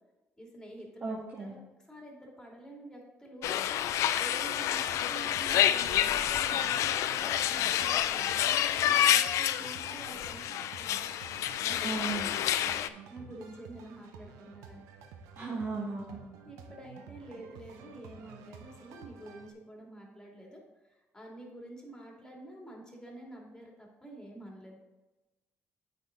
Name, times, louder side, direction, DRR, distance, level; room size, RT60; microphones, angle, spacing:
voice 1, 0.4-1.6 1.9-3.6 4.1-11.1 11.6-12.0 12.5-14.8 15.4-15.5 16.4-24.8, right 1 dB, 10° left, -1 dB, 2.6 m, -48 dB
voice 2, 1.0-1.5 11.8-12.3 15.3-16.2, right 4 dB, 40° right, -4 dB, 1.7 m, -35 dB
sound 1, 3.4-12.9, left 11 dB, 75° left, 0.3 m, -28 dB
sound 2, 4.5-19.5, right 6 dB, 85° right, 0.6 m, -51 dB
9.0 x 5.1 x 3.8 m, 1.1 s
supercardioid pair, 70°, 5 cm